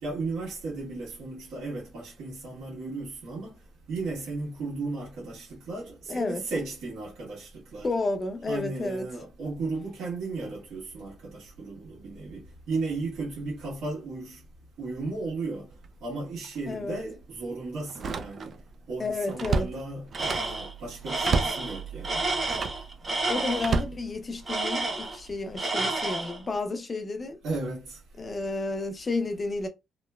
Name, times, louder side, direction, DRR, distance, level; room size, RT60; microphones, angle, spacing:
voice 1, 0.0-3.5 3.9-7.9 8.5-14.4 14.8-15.7 16.0-18.5 18.9-22.3 27.4-28.0, right 3 dB, 80° right, 1.3 m, -35 dB
voice 2, 6.1-6.4 7.8-9.1 16.7-17.0 19.0-19.7 23.3-27.4 28.2-29.7, left 3 dB, 30° left, 0.6 m, -31 dB
Slam, 15.7-16.0 16.4-16.6 17.9-18.7 19.0-20.6 21.2-21.7 22.4-22.9 23.6-24.7 25.3-25.6, right 5 dB, 50° right, 0.3 m, -30 dB
Tools, 20.2-20.7 21.1-23.8 24.5-25.3 25.6-26.4, right 2 dB, 30° right, 0.9 m, -30 dB
3.0 x 2.1 x 2.2 m
cardioid pair, 90°, 0 cm